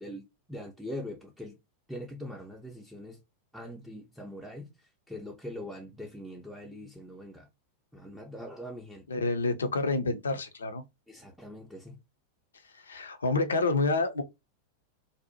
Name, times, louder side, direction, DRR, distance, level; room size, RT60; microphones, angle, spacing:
voice 1, 0.0-1.6 1.9-3.2 3.5-4.7 5.1-7.5 7.9-9.2 11.1-12.0, left 1 dB, ahead, 0.4 m, -42 dB
voice 2, 9.1-10.8 12.7-14.2, left 3 dB, 70° left, 0.4 m, -28 dB
2.6 x 2.0 x 2.6 m
figure-of-eight pair, 90°, 0 cm